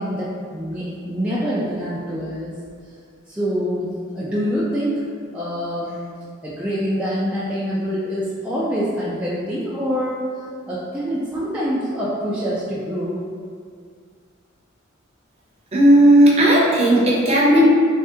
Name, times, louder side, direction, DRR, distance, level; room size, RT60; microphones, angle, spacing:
voice 1, 0.0-2.5 3.3-5.0 5.3-6.0 6.4-10.2 10.7-13.2, equal, 5° right, -9 dB, 0.4 m, -25 dB
voice 2, 15.7-17.7, right 1 dB, 30° right, -5 dB, 0.7 m, -14 dB
3.2 x 2.7 x 3.6 m, 2.2 s
head